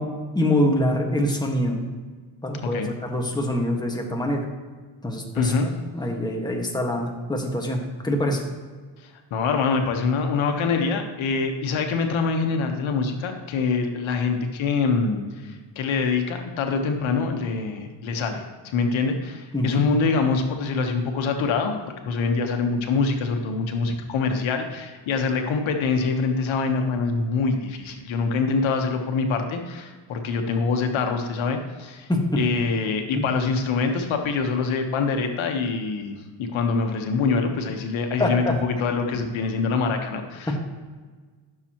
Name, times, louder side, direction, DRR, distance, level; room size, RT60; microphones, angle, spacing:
voice 1, 0.0-1.8 2.4-4.5 5.0-5.5 5.9-8.4 19.5-19.8 32.1-32.5 33.2-33.3 38.2-38.6 40.5-40.6, left 1 dB, 10° left, 1 dB, 1.6 m, -25 dB
voice 2, 5.3-5.7 9.0-21.7 22.0-32.1 32.4-40.5, left 4 dB, 85° left, 4 dB, 1.3 m, -25 dB
14.5 x 6.9 x 3.0 m, 1.4 s
cardioid pair, 105°, 46 cm